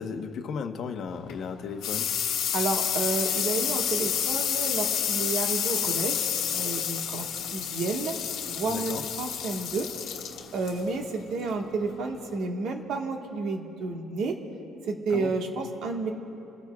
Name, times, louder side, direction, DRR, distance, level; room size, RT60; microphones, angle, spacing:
voice 1, 0.0-2.1 8.6-9.0 15.1-15.3, left 6 dB, 50° left, 6 dB, 1.0 m, -35 dB
sound 1, 1.1-12.4, left 9 dB, 80° left, 1.2 m, -30 dB
voice 2, 2.5-6.2 6.5-7.2 7.5-8.1 8.5-9.9 10.5-14.3 14.9-16.1, right 3 dB, 60° right, 2 dB, 1.5 m, -31 dB
29.0 x 14.5 x 2.4 m, 2.9 s
cardioid pair, 130°, 0 cm